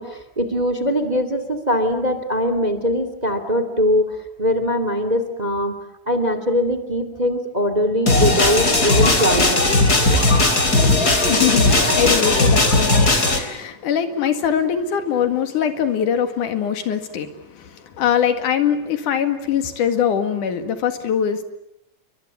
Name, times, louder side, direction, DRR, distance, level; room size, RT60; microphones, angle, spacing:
voice 1, 0.0-5.7 6.1-9.6, equal, 15° right, 9 dB, 2.3 m, -21 dB
sound 1, 8.1-13.4, left 2 dB, 30° left, 3.8 m, -17 dB
voice 2, 11.3-21.4, left 8 dB, 85° left, 8 dB, 3.5 m, -22 dB
29.5 x 23.5 x 8.5 m, 0.78 s
omnidirectional pair, 3.5 m